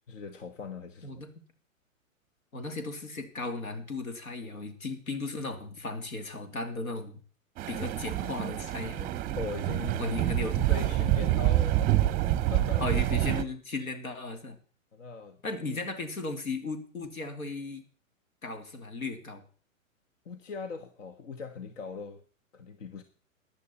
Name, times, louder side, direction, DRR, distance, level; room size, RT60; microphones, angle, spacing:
voice 1, 0.1-1.2 9.4-12.8 14.9-15.8 20.2-22.2 22.5-23.0, left 4 dB, 65° left, 9 dB, 1.4 m, -40 dB
voice 2, 2.5-7.2 7.7-9.1 10.0-10.6 12.8-14.6 15.4-17.8 18.4-19.4, left 3 dB, 85° left, 7 dB, 2.7 m, -36 dB
sound 1, 7.6-13.4, right 14 dB, 20° right, 0.7 m, -27 dB
15.0 x 10.5 x 4.3 m, 0.42 s
hypercardioid pair, 120°, 41 cm